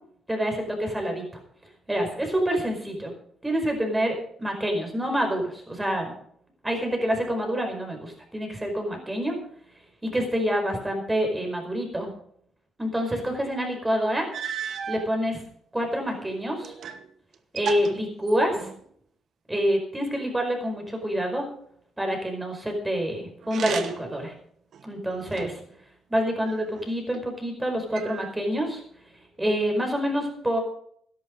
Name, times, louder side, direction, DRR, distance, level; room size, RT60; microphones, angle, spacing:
voice 1, 0.3-1.2 1.9-3.1 3.4-6.1 6.6-9.4 10.0-12.1 12.8-14.3 14.9-15.4 15.7-16.7 17.5-18.7 19.5-21.4 22.0-24.3 24.8-25.6 26.1-28.8 29.4-30.6, equal, 15° right, 3 dB, 4.9 m, -27 dB
sound 1, 13.7-13.8 14.3-15.1 15.8-17.1 17.3-18.9 23.4-24.2 24.7-25.7 26.4-27.2 27.9-28.7, right 8 dB, 65° right, 1.0 m, -35 dB
13.0 x 11.0 x 5.1 m, 0.65 s
cardioid pair, 90°, 0 cm